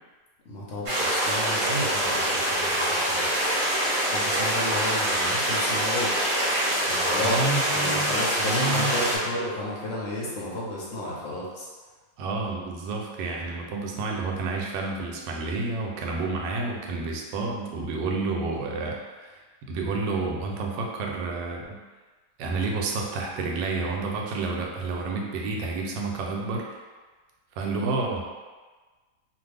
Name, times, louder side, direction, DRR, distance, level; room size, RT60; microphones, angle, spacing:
voice 1, 0.5-3.3 4.1-6.2 6.9-7.4 7.7-11.6, left 1 dB, 60° left, -6 dB, 0.7 m, -32 dB
sound 1, 0.8-9.2, right 1 dB, 45° right, 0.4 m, -25 dB
voice 2, 7.2-9.0 12.2-19.4 19.7-21.8 22.4-26.8 27.6-28.3, right 3 dB, 85° right, 0 dB, 1.3 m, -30 dB
2.7 x 2.5 x 3.3 m, 1.3 s
omnidirectional pair, 1.9 m